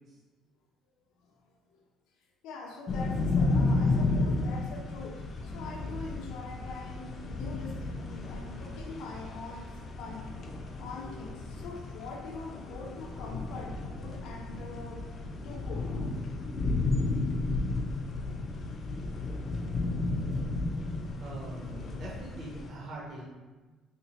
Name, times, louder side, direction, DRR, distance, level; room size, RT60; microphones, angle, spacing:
voice 1, 2.4-10.3 10.8-15.1 15.4-15.9, left 4 dB, 75° left, -1 dB, 0.6 m, -43 dB
sound 1, 2.9-22.7, left 3 dB, 30° left, 0.3 m, -33 dB
voice 2, 21.2-23.2, right 1 dB, 35° right, -5 dB, 0.6 m, -43 dB
3.3 x 2.9 x 2.8 m, 1.3 s
cardioid pair, 170°, 0 cm